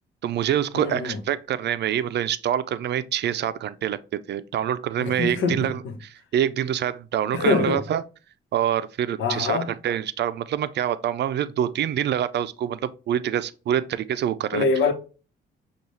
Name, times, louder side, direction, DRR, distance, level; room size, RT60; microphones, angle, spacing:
voice 1, 0.2-8.0 8.5-14.6, right 10 dB, 60° right, 0.4 m, -26 dB
voice 2, 0.7-1.2 5.0-6.0 7.3-7.8 9.2-9.7 14.5-14.9, left 4 dB, 80° left, 0.9 m, -24 dB
6.7 x 2.4 x 3.1 m
cardioid pair, 90°, 20 cm